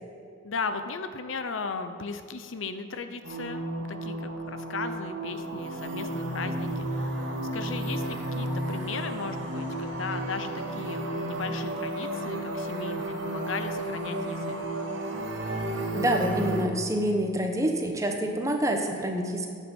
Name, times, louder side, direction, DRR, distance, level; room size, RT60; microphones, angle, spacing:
voice 1, 0.4-14.6, left 4 dB, 85° left, 9 dB, 0.8 m, -36 dB
sound 1, 3.2-16.7, right 1 dB, 70° right, 1.9 m, -32 dB
voice 2, 15.9-19.5, right 1 dB, 15° right, 3 dB, 1.0 m, -27 dB
10.5 x 8.4 x 5.4 m, 2.4 s
head